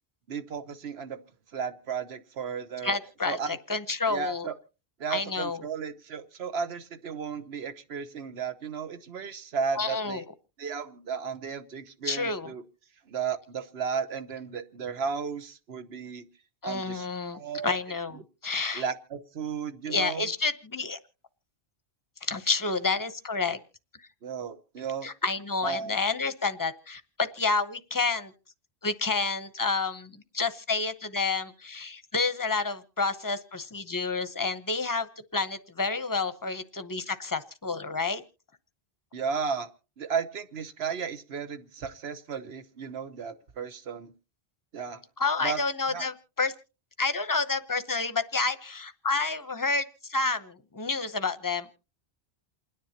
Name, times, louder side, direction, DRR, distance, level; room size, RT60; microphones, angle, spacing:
voice 1, 0.3-1.2 1.5-3.0 3.3-3.6 4.1-4.5 5.0-10.2 10.6-12.6 13.1-16.3 16.6-17.1 17.3-17.8 18.7-20.3 24.2-25.1 25.6-26.0 39.1-39.7 40.0-44.1 44.7-45.0 45.4-45.6 45.9-46.1, right 6 dB, 70° right, 11 dB, 1.2 m, -34 dB
voice 2, 2.8-4.5 5.1-5.6 9.8-10.2 12.0-12.5 16.6-18.8 19.9-21.0 22.2-23.6 25.0-28.3 28.8-35.1 35.3-38.2 45.2-46.5 47.0-51.7, left 4 dB, 20° left, 11 dB, 0.8 m, -29 dB
28.5 x 10.0 x 2.9 m, 0.33 s
omnidirectional pair, 1.1 m